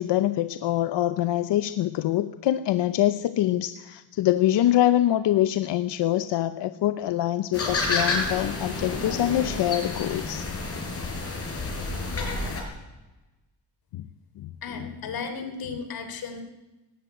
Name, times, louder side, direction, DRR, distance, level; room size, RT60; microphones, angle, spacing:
voice 1, 0.0-10.5 13.9-14.0 14.4-14.5 14.8-14.9, left 13 dB, 80° left, 12 dB, 0.9 m, -24 dB
sound 1, 7.5-12.6, left 3 dB, 35° left, 5.0 m, -29 dB
voice 2, 14.6-16.4, left 5 dB, 55° left, 8 dB, 3.3 m, -34 dB
18.5 x 16.0 x 9.3 m, 1.1 s
cardioid pair, 165°, 42 cm